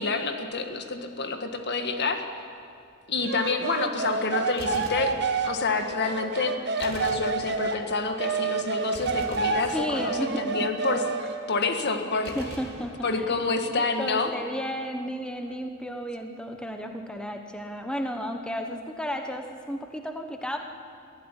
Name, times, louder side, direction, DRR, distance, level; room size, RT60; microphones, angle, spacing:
voice 1, 0.0-2.2 3.1-5.1 5.4-11.0 11.5-12.4 13.0-14.3, left 3 dB, 50° left, 6 dB, 1.8 m, -28 dB
sound 1, 3.2-7.8 8.2-11.4, right 4 dB, 50° right, 1.5 m, -29 dB
Gunshot gunfire, 4.6-5.8 6.8-8.0 8.9-10.4 12.3-13.6, right 1 dB, 75° right, 3.9 m, -43 dB
voice 2, 9.7-10.5 12.2-13.4 14.0-20.6, equal, 5° left, 5 dB, 1.1 m, -33 dB
23.0 x 15.5 x 9.9 m, 2.3 s
head